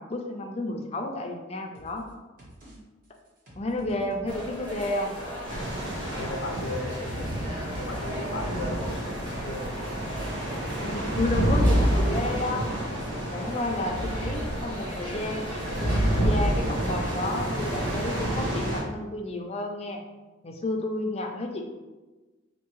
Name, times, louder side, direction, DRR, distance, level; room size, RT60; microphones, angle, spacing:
voice 1, 0.0-2.1 3.6-5.1 10.8-12.8 13.3-15.5 15.8-20.0 20.4-21.6, left 2 dB, 30° left, 2 dB, 0.4 m, -31 dB
sound 1, 1.7-2.1 2.4-2.8 3.0-5.5 5.8-6.2 6.5-8.6, equal, 45° right, 1.1 m, -49 dB
sound 2, 4.2-18.3, equal, 25° right, 1.1 m, -38 dB
sound 3, 5.5-18.8, right 1 dB, 75° right, 1.1 m, -28 dB
voice 2, 6.2-7.4 7.7-9.8, left 2 dB, 90° left, 1 dB, 0.6 m, -36 dB
4.4 x 2.6 x 3.0 m, 1.2 s
head